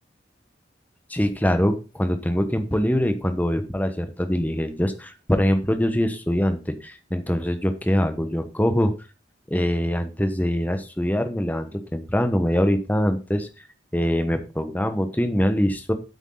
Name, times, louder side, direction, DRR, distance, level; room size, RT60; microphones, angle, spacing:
voice 1, 1.1-8.9 9.5-13.5 13.9-15.9, equal, 10° left, 9 dB, 1.1 m, -23 dB
9.1 x 8.2 x 3.8 m, 0.31 s
head